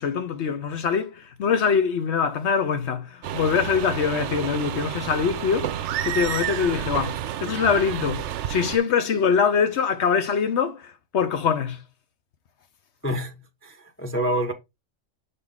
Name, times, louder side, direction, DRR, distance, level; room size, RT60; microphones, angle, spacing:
voice 1, 0.0-11.8, left 6 dB, 65° left, 1.0 m, -24 dB
sound 1, 3.2-8.8, right 10 dB, 75° right, 0.9 m, -30 dB
voice 2, 13.6-14.5, right 1 dB, 15° left, 0.7 m, -27 dB
6.7 x 4.2 x 3.6 m
omnidirectional pair, 1.3 m